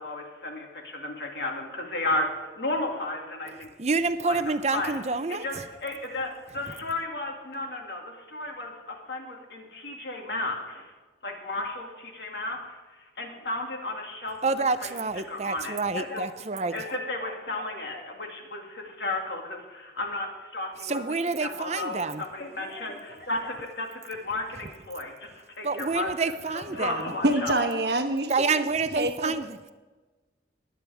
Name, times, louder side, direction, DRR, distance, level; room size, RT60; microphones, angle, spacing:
voice 1, 0.0-3.7 4.2-4.9 5.3-10.9 11.2-14.4 14.8-14.9 15.3-26.1 26.5-27.8, left 2 dB, 65° left, 1 dB, 2.2 m, -34 dB
voice 2, 3.8-5.6 14.4-16.7 20.8-22.2 25.6-27.1 28.3-29.6, right 4 dB, 35° right, 11 dB, 0.6 m, -28 dB
voice 3, 27.2-28.3 28.6-29.3, right 1 dB, 65° right, 7 dB, 1.0 m, -26 dB
21.0 x 8.6 x 3.5 m, 1.2 s
head